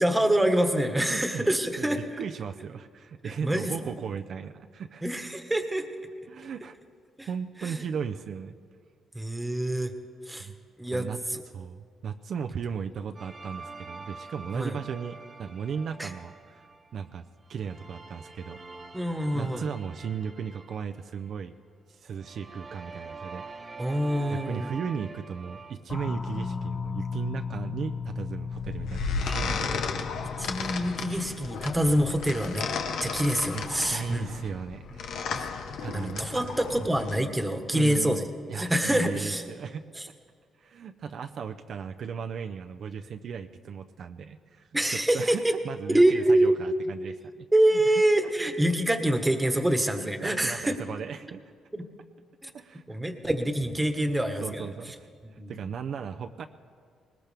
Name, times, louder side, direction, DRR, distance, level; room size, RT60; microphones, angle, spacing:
voice 1, 0.0-2.0 3.4-3.7 5.0-5.8 7.2-7.3 7.6-7.7 9.1-9.9 10.3-10.5 10.8-11.4 14.5-14.8 16.0-16.1 18.9-19.6 23.8-24.7 29.2-29.4 30.4-32.7 33.0-34.3 35.3-35.5 35.9-38.2 38.6-39.4 40.0-40.1 44.7-45.5 45.9-46.5 47.5-50.8 52.4-52.5 52.9-54.7 55.4-55.5, right 1 dB, 10° right, 6 dB, 1.3 m, -25 dB
voice 2, 1.0-1.5 1.8-5.0 6.3-6.8 7.2-8.6 10.4-10.6 10.9-11.2 11.5-16.6 16.9-17.2 17.5-18.6 19.3-21.5 21.9-23.4 23.8-29.7 33.5-35.0 35.8-36.4 37.7-38.2 38.5-39.8 40.6-47.5 47.7-48.3 49.6-49.7 50.0-51.4 52.5-52.8 54.0-54.1 54.4-56.4, right 7 dB, 60° right, 6 dB, 0.5 m, -36 dB
sound 1, 13.1-17.1 17.4-21.5 22.1-25.7, right 3 dB, 30° right, 1.1 m, -45 dB
sound 2, 25.9-32.2, left 5 dB, 25° left, 0.9 m, -36 dB
sound 3, 28.5-37.2, left 5 dB, 75° left, 1.0 m, -34 dB
19.5 x 19.5 x 3.5 m, 2.1 s
cardioid pair, 90°, 0 cm